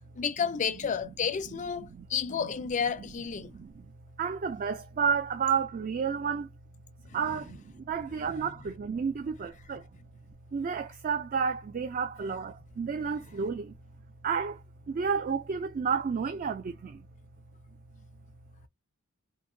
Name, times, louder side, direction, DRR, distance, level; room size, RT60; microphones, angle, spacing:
voice 1, 0.2-3.5 7.1-7.2, left 7 dB, 35° left, 0.4 m, -31 dB
voice 2, 1.9-2.5 3.0-3.1 3.4-3.9 4.2-6.5 7.1-9.9 10.5-13.7 14.2-14.6 14.9-17.0, right 6 dB, 40° right, 0.3 m, -31 dB
2.7 x 2.7 x 2.5 m
head